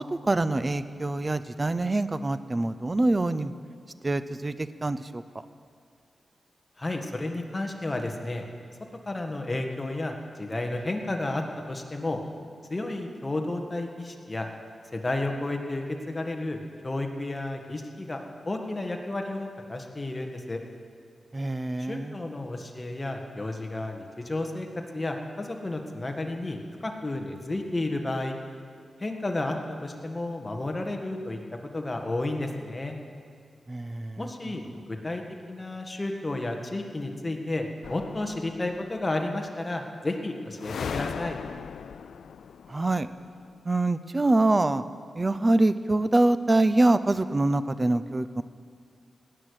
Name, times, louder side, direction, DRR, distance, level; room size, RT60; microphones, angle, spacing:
voice 1, 0.1-3.5 4.0-5.2 21.3-22.1 33.7-34.6 42.7-43.1 43.6-44.8 45.1-48.4, right 2 dB, 30° right, 12 dB, 0.6 m, -25 dB
voice 2, 6.8-8.4 9.1-11.4 11.7-12.2 12.7-14.5 14.9-20.6 21.8-24.7 24.9-28.4 29.0-31.4 31.7-33.0 34.2-35.2 35.5-41.4, left 2 dB, 25° left, 3 dB, 1.7 m, -32 dB
sound 1, 37.8-39.0 40.6-43.4, left 7 dB, 85° left, 0.3 m, -38 dB
18.0 x 6.7 x 9.7 m, 2.2 s
cardioid pair, 75°, 0 cm